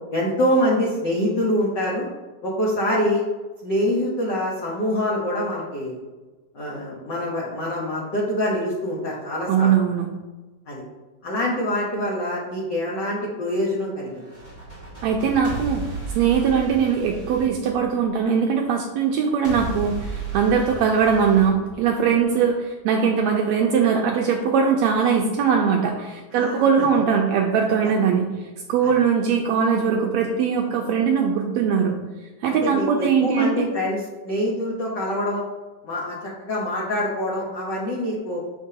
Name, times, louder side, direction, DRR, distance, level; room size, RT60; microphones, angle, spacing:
voice 1, 0.1-2.1 2.4-3.2 3.6-6.0 6.5-9.8 10.7-10.8 11.2-14.2 22.3-22.4 26.3-26.8 28.8-28.9 32.5-35.4 35.8-38.4, left 1 dB, 85° left, -5 dB, 0.9 m, -25 dB
voice 2, 9.5-10.1 15.0-15.9 16.1-20.0 20.3-22.6 22.8-28.3 28.7-32.0 32.4-33.7, right 6 dB, 85° right, 1 dB, 1.6 m, -20 dB
sound 1, 14.2-18.3 19.4-22.3, right 3 dB, 20° left, 1.2 m, -34 dB
6.8 x 5.2 x 2.8 m, 1.2 s
omnidirectional pair, 3.6 m